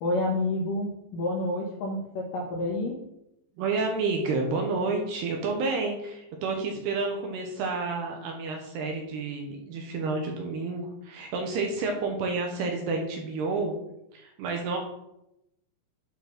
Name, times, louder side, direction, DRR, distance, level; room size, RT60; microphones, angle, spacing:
voice 1, 0.0-2.9, left 2 dB, 75° left, -2 dB, 2.0 m, -29 dB
voice 2, 3.6-13.7 14.1-14.8, right 3 dB, 70° right, 2 dB, 2.7 m, -30 dB
9.4 x 4.8 x 5.9 m, 0.84 s
omnidirectional pair, 5.6 m